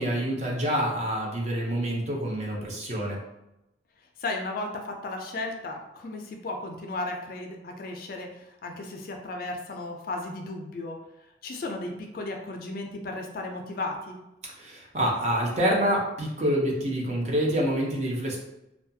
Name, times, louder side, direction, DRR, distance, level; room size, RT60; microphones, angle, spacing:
voice 1, 0.0-3.2 14.6-18.4, equal, 35° right, -2 dB, 0.5 m, -27 dB
voice 2, 4.2-11.0 11.2-14.2, left 2 dB, 50° left, 3 dB, 0.3 m, -35 dB
2.4 x 2.2 x 2.6 m, 0.92 s
head